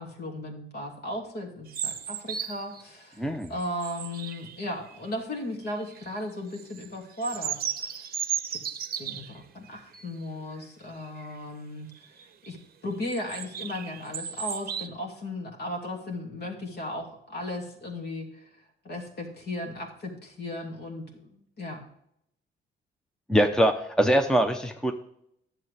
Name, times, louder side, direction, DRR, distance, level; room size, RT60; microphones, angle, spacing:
voice 1, 0.0-8.0 8.5-8.6 9.0-11.9 12.5-12.6 12.8-18.4 18.8-21.9, left 1 dB, 55° left, 1 dB, 2.5 m, -36 dB
sound 1, 1.7-2.8 3.3-5.0 5.7-6.1 6.5-9.4 9.9-10.2 10.5-10.6 11.0-11.4 11.9-12.5 13.0-14.9, right 9 dB, 50° right, 0.7 m, -35 dB
voice 2, 3.2-3.5 23.3-24.9, equal, 5° left, 6 dB, 0.8 m, -23 dB
10.5 x 7.5 x 3.4 m, 0.74 s
cardioid pair, 90°, 20 cm